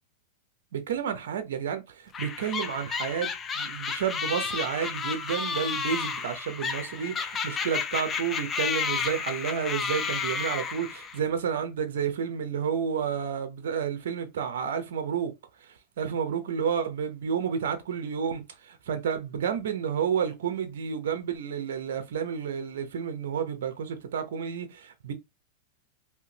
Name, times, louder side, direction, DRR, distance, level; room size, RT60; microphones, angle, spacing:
voice 1, 0.7-15.3 15.6-25.1, right 7 dB, 80° right, 0.7 m, -31 dB
sound 1, 2.1-11.2, left 6 dB, 25° left, 0.5 m, -32 dB
3.6 x 2.8 x 2.8 m
hypercardioid pair, 130°, 0 cm